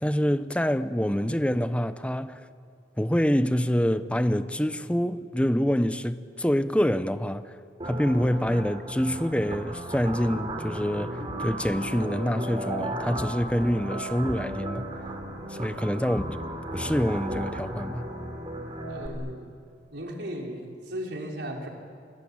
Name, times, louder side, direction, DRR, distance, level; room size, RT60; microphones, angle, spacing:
voice 1, 0.0-2.4 3.0-7.6 7.8-14.9 15.5-16.2 16.7-18.1, equal, 5° left, 0.9 m, -26 dB
sound 1, 7.8-19.1, right 1 dB, 30° right, 3.3 m, -35 dB
voice 2, 18.9-19.6 19.9-21.7, equal, 70° right, 4.6 m, -36 dB
29.5 x 22.5 x 8.9 m
head